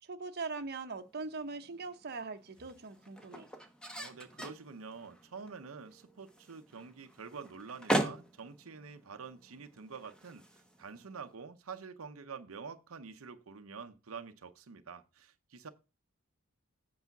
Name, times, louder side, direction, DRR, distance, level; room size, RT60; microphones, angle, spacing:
voice 1, 0.0-3.5, right 4 dB, 50° right, 0.9 m, -41 dB
sound 1, 1.0-11.3, right 1 dB, 5° left, 1.1 m, -41 dB
voice 2, 4.0-15.7, right 5 dB, 85° right, 0.7 m, -47 dB
8.2 x 4.9 x 5.9 m
head